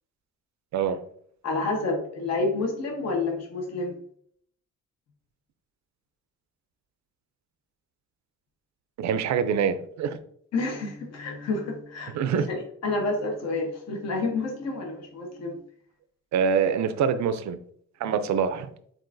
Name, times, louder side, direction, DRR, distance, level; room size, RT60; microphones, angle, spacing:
voice 1, 1.4-3.9 10.5-12.2 12.5-15.6, left 3 dB, 55° left, 1.0 m, -29 dB
voice 2, 9.0-10.2 12.1-12.5 16.3-17.6 18.0-18.7, right 7 dB, 65° right, 0.5 m, -25 dB
7.5 x 2.5 x 2.6 m
cardioid pair, 90°, 30 cm